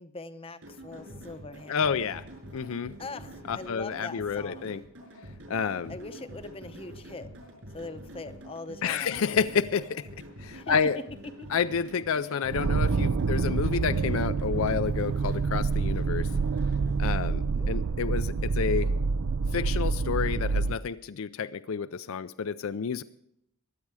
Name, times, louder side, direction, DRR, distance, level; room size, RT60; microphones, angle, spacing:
voice 1, 0.0-2.1 3.0-4.8 5.9-7.3 7.7-9.2 10.5-11.0 11.4-11.5 17.5-17.7, left 3 dB, 25° left, 10 dB, 0.7 m, -42 dB
sound 1, 0.6-17.2, right 1 dB, 60° right, 5.6 m, -46 dB
voice 2, 1.7-2.2 2.5-2.9 3.5-4.8 5.5-5.9 8.8-10.1 10.4-11.0 11.5-16.3 17.0-18.9 19.5-23.0, left 6 dB, 65° left, 11 dB, 0.4 m, -29 dB
sound 2, 12.5-20.8, right 4 dB, 80° right, 0.5 m, -27 dB
22.0 x 8.5 x 4.8 m, 0.74 s
head